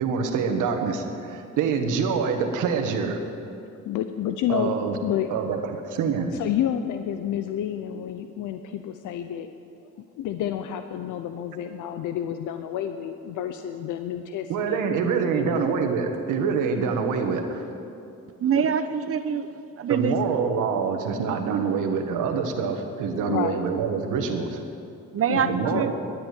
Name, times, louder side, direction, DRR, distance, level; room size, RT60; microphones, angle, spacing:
voice 1, 0.0-3.2 4.5-4.9 5.3-6.3 14.5-17.7 19.9-24.6 25.5-25.9, right 6 dB, 85° right, 5 dB, 1.6 m, -25 dB
voice 2, 3.8-4.8 5.0-5.3 6.3-9.5 10.0-14.8 15.3-15.7 23.3-23.7 25.3-25.8, left 10 dB, 85° left, 8 dB, 0.7 m, -30 dB
voice 3, 18.4-19.5 19.8-20.2 25.1-25.9, right 7 dB, 50° right, 10 dB, 0.9 m, -24 dB
12.5 x 10.0 x 8.3 m, 2.6 s
cardioid pair, 90°, 30 cm